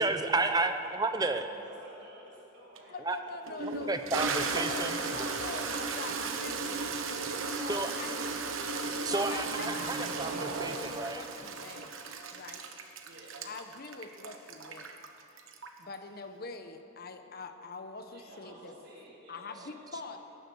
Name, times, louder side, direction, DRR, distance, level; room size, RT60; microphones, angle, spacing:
voice 1, 0.0-1.4 3.0-3.2 3.9-5.4 7.7-7.9 9.0-11.2, right 3 dB, 20° right, 7 dB, 0.7 m, -31 dB
voice 2, 0.8-3.0 4.6-5.7 7.3-8.2 13.0-13.5 18.1-20.2, right 1 dB, 55° right, -6 dB, 4.4 m, -52 dB
Toilet flush, 2.8-2.9 3.5-15.9, right 4 dB, 70° right, 1.2 m, -35 dB
voice 3, 2.9-4.0 4.5-6.9 7.5-8.2 8.9-12.0 12.3-12.7 13.4-15.0 15.8-18.7 19.3-20.2, left 4 dB, 45° left, 7 dB, 0.9 m, -44 dB
18.0 x 11.0 x 7.0 m, 2.9 s
head